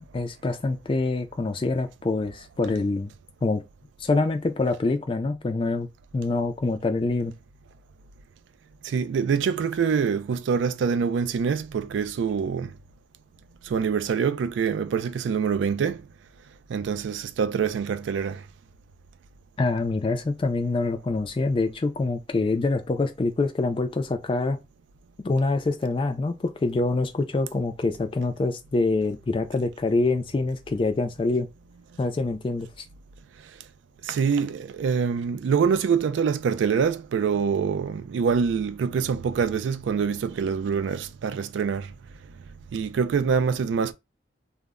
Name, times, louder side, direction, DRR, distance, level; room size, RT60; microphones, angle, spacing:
voice 1, 0.0-3.1 3.4-3.6 4.0-5.9 6.1-7.3 19.6-24.6 25.2-31.5 32.0-32.8, left 3 dB, 30° left, 0.3 m, -25 dB
voice 2, 8.8-12.7 13.7-16.0 16.7-18.4 34.1-41.9 42.7-43.9, right 6 dB, 85° right, 0.3 m, -25 dB
2.1 x 2.0 x 3.5 m
head